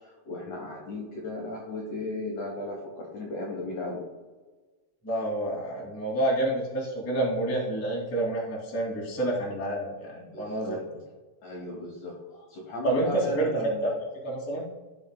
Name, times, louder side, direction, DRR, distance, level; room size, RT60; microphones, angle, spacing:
voice 1, 0.0-4.1 10.3-10.8 11.4-13.9, left 2 dB, 60° left, -2 dB, 2.1 m, -36 dB
voice 2, 5.0-10.8 12.8-14.7, right 1 dB, 5° left, -4 dB, 1.2 m, -28 dB
16.5 x 6.7 x 2.3 m, 1.3 s
omnidirectional pair, 5.0 m